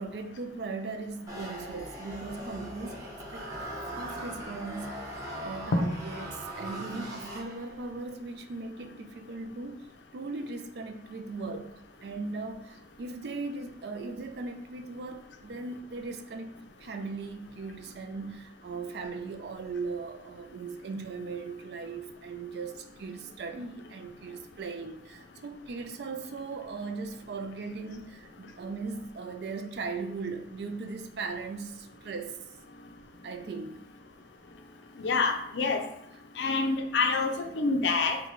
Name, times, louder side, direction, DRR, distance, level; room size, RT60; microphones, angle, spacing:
voice 1, 0.0-3.4 4.0-9.9 10.1-32.4 33.2-33.8, right 4 dB, 60° right, 0.4 m, -38 dB
sound 1, 1.3-7.9, equal, 20° right, 0.9 m, -40 dB
voice 2, 35.0-35.9 36.4-38.2, left 4 dB, 80° left, 0.5 m, -27 dB
4.0 x 2.2 x 3.0 m
head